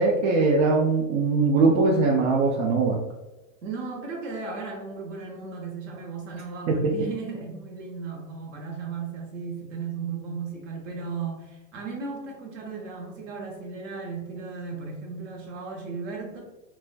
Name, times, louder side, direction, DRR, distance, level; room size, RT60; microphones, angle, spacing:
voice 1, 0.0-3.0 6.7-6.9, right 3 dB, 85° right, -1 dB, 0.6 m, -21 dB
voice 2, 3.6-16.4, right 4 dB, 65° right, 0 dB, 0.9 m, -35 dB
3.3 x 2.1 x 2.5 m, 1.0 s
supercardioid pair, 170°, 39 cm